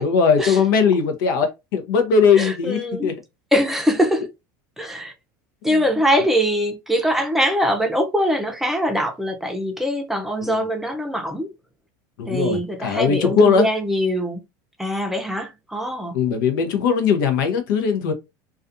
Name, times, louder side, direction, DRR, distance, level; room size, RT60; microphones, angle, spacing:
voice 1, 0.0-3.1 5.6-5.8 10.4-10.7 12.2-13.7 16.1-18.1, left 6 dB, 80° left, 0.8 m, -19 dB
voice 2, 2.3-3.1 3.5-4.2 4.8-5.1 5.6-11.5 12.3-14.4 14.8-16.1, equal, 5° right, 0.6 m, -22 dB
2.4 x 2.4 x 2.6 m
supercardioid pair, 120°, 11 cm